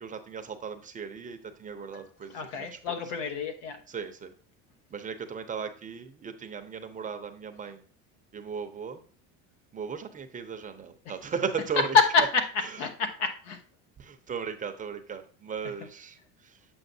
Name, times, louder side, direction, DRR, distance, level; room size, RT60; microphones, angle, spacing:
voice 1, 0.0-3.0 3.9-4.3 4.9-7.8 8.3-9.0 9.7-12.0 12.7-12.8 14.0-16.7, right 6 dB, 20° right, 7 dB, 0.6 m, -37 dB
voice 2, 2.3-3.8 11.9-12.4 12.8-13.6, left 4 dB, 90° left, 6 dB, 1.2 m, -26 dB
7.8 x 5.6 x 2.7 m, 0.43 s
supercardioid pair, 125°, 35 cm